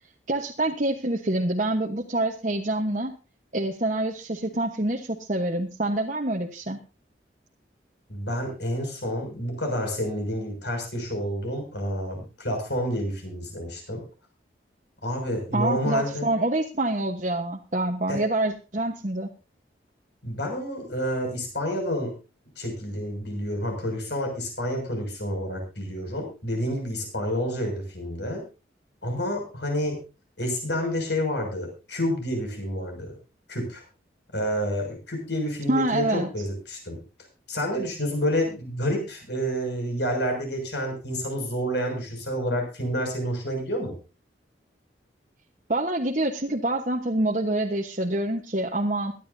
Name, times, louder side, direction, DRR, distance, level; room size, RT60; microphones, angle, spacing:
voice 1, 0.3-3.1 3.5-6.8 15.5-19.3 35.7-36.3 45.7-49.1, right 1 dB, 40° right, 1 dB, 1.2 m, -26 dB
voice 2, 8.1-14.0 15.0-16.3 18.1-18.2 20.2-22.2 22.6-28.4 29.0-30.0 30.4-33.1 33.5-33.8 34.3-37.0 37.5-43.9, equal, 70° left, 3 dB, 6.4 m, -29 dB
23.0 x 11.0 x 2.7 m, 0.31 s
head